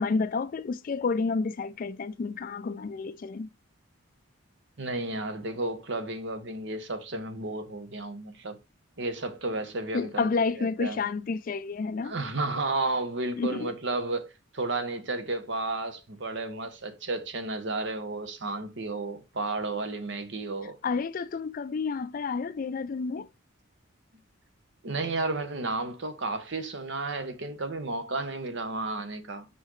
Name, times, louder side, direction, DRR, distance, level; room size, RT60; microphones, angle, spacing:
voice 1, 0.0-3.5 9.9-12.1 13.4-13.7 20.8-23.3, left 4 dB, 40° left, 0.3 m, -30 dB
voice 2, 4.8-8.6 9.0-10.3 10.6-11.0 12.0-20.8 24.8-29.5, right 2 dB, 60° right, 0.9 m, -32 dB
5.5 x 5.3 x 3.2 m
head